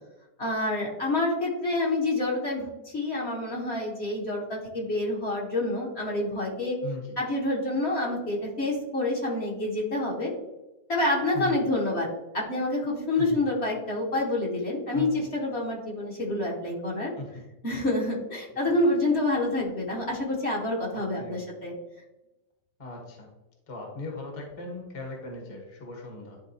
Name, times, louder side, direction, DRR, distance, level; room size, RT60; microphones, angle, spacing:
voice 1, 0.4-6.8 7.2-10.3 10.9-12.1 12.3-17.1 17.6-21.7, left 2 dB, 45° left, -3 dB, 1.3 m, -28 dB
voice 2, 6.8-7.2 11.3-11.6 13.1-13.4 14.9-15.2 17.2-17.3 18.6-18.8 20.9-21.4 22.8-23.3 23.7-26.4, left 3 dB, 25° left, 0 dB, 1.0 m, -38 dB
10.5 x 3.6 x 2.7 m, 1.0 s
omnidirectional pair, 1.8 m